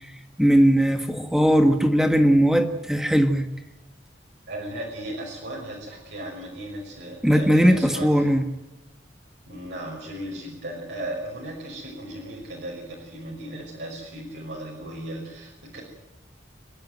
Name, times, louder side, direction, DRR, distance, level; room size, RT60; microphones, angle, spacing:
voice 1, 0.4-3.5 7.2-8.4, equal, 5° right, 7 dB, 1.6 m, -19 dB
voice 2, 4.5-8.1 9.5-15.8, right 1 dB, 70° right, -3 dB, 5.8 m, -36 dB
28.0 x 11.5 x 9.3 m, 1.0 s
head